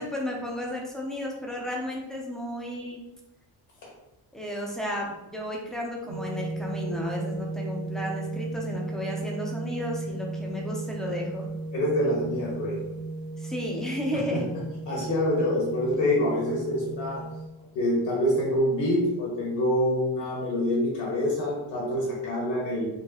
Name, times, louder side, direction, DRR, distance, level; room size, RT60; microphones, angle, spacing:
voice 1, 0.0-3.0 4.3-11.5 13.4-14.4, left 1 dB, ahead, -1 dB, 0.4 m, -33 dB
sound 1, 6.1-17.5, right 2 dB, 85° right, 0.7 m, -35 dB
voice 2, 11.7-12.8 14.3-14.4 14.9-17.2 17.7-22.9, left 1 dB, 65° left, -4 dB, 1.4 m, -26 dB
4.7 x 3.0 x 2.8 m, 0.96 s
cardioid pair, 180°, 46 cm